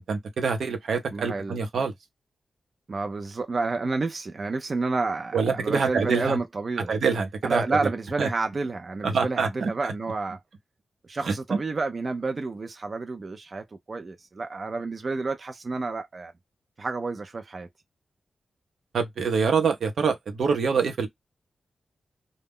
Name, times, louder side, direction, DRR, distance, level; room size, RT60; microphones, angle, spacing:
voice 1, 0.1-1.9 5.3-6.4 6.9-7.9 8.2-8.3 9.0-9.7 11.3-11.4 18.9-21.1, right 5 dB, 80° right, 0.6 m, -25 dB
voice 2, 1.1-1.6 2.9-6.9 7.4-10.4 11.1-16.3 16.8-17.7, right 3 dB, 35° right, 0.4 m, -30 dB
2.1 x 2.0 x 3.5 m
wide cardioid pair, 140°, 0 cm